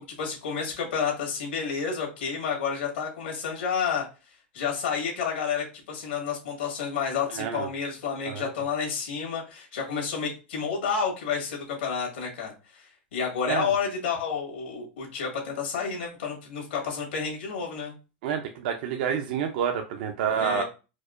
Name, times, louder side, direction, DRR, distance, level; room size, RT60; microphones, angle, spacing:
voice 1, 0.2-4.0 4.5-17.9 20.3-20.6, left 6 dB, 85° left, -1 dB, 1.8 m, -30 dB
voice 2, 7.3-7.7 8.3-8.5 13.5-13.7 18.2-20.6, right 8 dB, 60° right, 4 dB, 0.5 m, -28 dB
4.6 x 2.1 x 2.5 m, 0.31 s
supercardioid pair, 135°, 6 cm